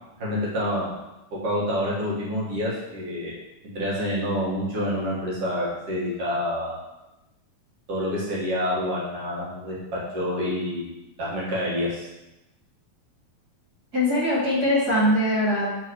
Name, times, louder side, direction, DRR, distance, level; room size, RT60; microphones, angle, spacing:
voice 1, 0.2-0.9 1.3-3.3 3.6-6.8 7.9-10.9 11.2-12.1, equal, 50° right, -6 dB, 2.3 m, -27 dB
voice 2, 13.9-15.7, left 1 dB, 35° right, -9 dB, 1.9 m, -22 dB
9.3 x 4.1 x 3.1 m, 0.97 s
omnidirectional pair, 4.1 m